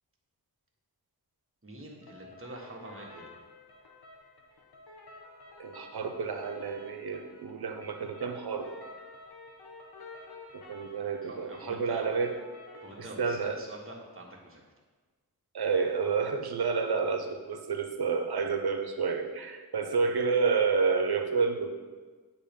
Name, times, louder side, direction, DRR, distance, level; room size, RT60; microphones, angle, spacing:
voice 1, 1.6-3.3 11.2-12.1 12.8-14.6, right 1 dB, 35° right, -1 dB, 1.2 m, -46 dB
sound 1, 2.0-13.0, left 2 dB, 90° left, 1.0 m, -51 dB
voice 2, 5.6-8.7 10.5-12.3 13.2-13.6 15.5-21.7, right 5 dB, 80° right, 5 dB, 0.7 m, -29 dB
8.5 x 3.0 x 5.1 m, 1.4 s
wide cardioid pair, 80°, 38 cm